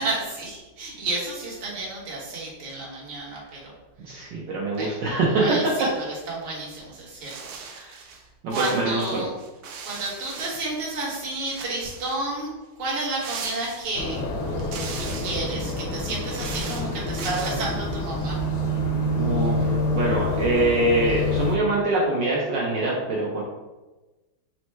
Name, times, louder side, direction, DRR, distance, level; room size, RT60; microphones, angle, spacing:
voice 1, 0.0-3.7 4.8-4.9 5.4-5.9 6.3-7.3 8.0-8.2 8.5-9.3 9.9-12.5 12.8-14.2 15.0-18.4, right 2 dB, 35° right, -5 dB, 1.0 m, -31 dB
voice 2, 4.0-5.4 7.7-8.0 8.4-9.2 19.2-23.4, right 2 dB, 70° right, -4 dB, 1.2 m, -24 dB
sound 1, 7.2-8.2 8.5-11.2 11.5-12.3 13.2-14.2 14.6-15.5 16.1-17.7, right 5 dB, 85° right, 0.8 m, -39 dB
sound 2, 13.9-21.6, left 1 dB, 75° left, 1.4 m, -27 dB
4.3 x 2.0 x 4.3 m, 1.2 s
omnidirectional pair, 2.2 m